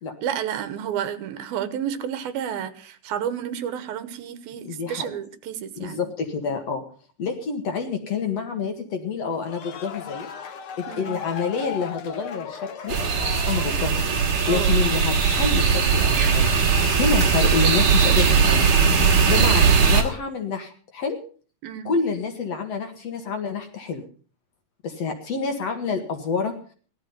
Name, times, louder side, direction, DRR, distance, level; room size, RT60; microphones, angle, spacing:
voice 1, 0.2-6.0 10.9-11.1 14.4-14.9 21.6-21.9, right 9 dB, 80° right, 13 dB, 2.9 m, -31 dB
voice 2, 4.7-5.1 5.8-6.8 7.2-10.3 10.8-13.0 13.4-14.0 14.5-18.7 19.1-21.2 21.9-24.0 24.8-26.5, left 5 dB, 50° left, 5 dB, 2.5 m, -28 dB
sound 1, 9.3-14.3, left 8 dB, 70° left, 1.3 m, -37 dB
sound 2, 12.9-20.0, right 6 dB, 50° right, 3.3 m, -19 dB
16.5 x 13.0 x 5.7 m, 0.41 s
omnidirectional pair, 4.3 m